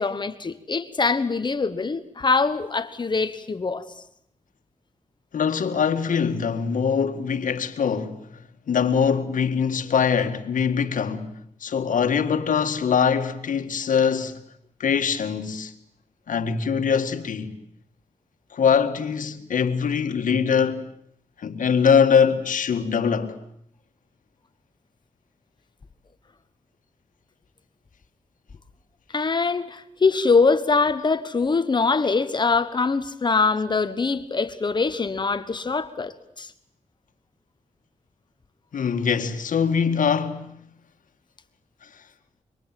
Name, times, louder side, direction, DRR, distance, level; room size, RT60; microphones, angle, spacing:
voice 1, 0.0-3.8 29.1-36.5, left 4 dB, 35° left, 1.3 m, -23 dB
voice 2, 5.3-8.2 8.7-11.3 11.6-14.4 14.8-15.7 16.3-17.5 18.5-20.9 21.4-23.4 38.7-40.5, left 6 dB, 85° left, 1.9 m, -22 dB
26.0 x 24.0 x 9.2 m
wide cardioid pair, 150°, 13 cm